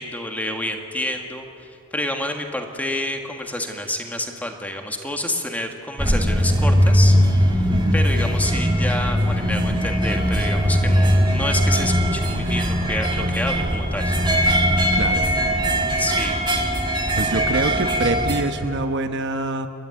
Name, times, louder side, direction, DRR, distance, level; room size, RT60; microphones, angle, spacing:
voice 1, 0.0-14.2 16.0-16.4, left 1 dB, 10° left, 3 dB, 1.9 m, -29 dB
sound 1, 6.0-18.4, equal, 20° right, 2.2 m, -20 dB
voice 2, 14.9-15.2 17.1-19.7, right 2 dB, 60° right, 7 dB, 1.1 m, -25 dB
29.5 x 12.5 x 9.7 m, 2.6 s
head